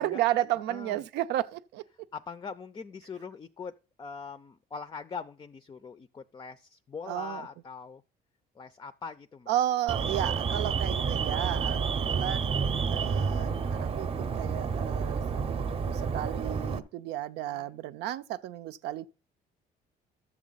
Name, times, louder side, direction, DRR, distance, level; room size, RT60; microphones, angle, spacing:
voice 1, 0.0-1.8 7.1-7.5 9.5-19.1, right 13 dB, 85° right, 0.6 m, -33 dB
voice 2, 0.7-1.0 2.1-8.0 8.6-9.5 17.5-17.7, left 5 dB, 25° left, 0.4 m, -42 dB
Alarm, 9.9-16.8, right 5 dB, 35° right, 0.7 m, -29 dB
12.0 x 7.3 x 4.0 m
cardioid pair, 110°, 17 cm